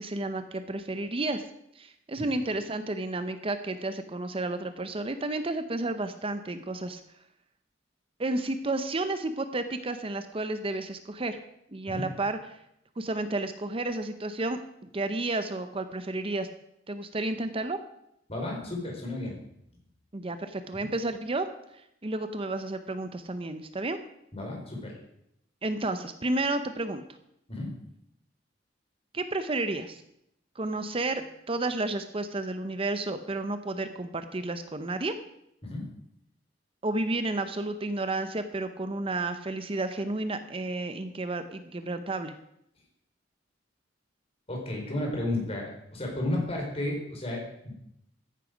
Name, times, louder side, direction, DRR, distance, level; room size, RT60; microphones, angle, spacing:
voice 1, 0.0-1.4 1.7-7.0 8.2-11.4 11.7-12.6 13.0-16.5 16.9-17.8 20.1-21.5 21.7-24.0 25.6-27.0 29.1-30.0 30.6-35.1 36.8-42.3, right 2 dB, 30° right, 9 dB, 0.7 m, -31 dB
voice 2, 18.3-19.3 24.3-25.0 27.5-27.7 35.6-35.8 44.5-47.7, left 1 dB, 35° left, 0 dB, 4.3 m, -32 dB
14.5 x 10.0 x 5.1 m, 0.77 s
head